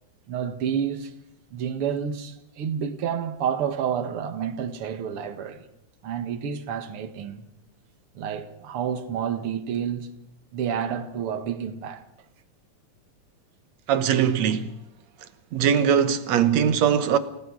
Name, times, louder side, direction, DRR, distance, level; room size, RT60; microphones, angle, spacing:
voice 1, 0.3-1.1 1.5-5.6 6.0-7.5 8.2-10.1 10.5-12.0, right 8 dB, 50° right, 2.3 m, -29 dB
voice 2, 13.9-14.8 15.5-17.2, right 8 dB, 65° right, 2.4 m, -21 dB
29.5 x 19.0 x 6.4 m
omnidirectional pair, 3.5 m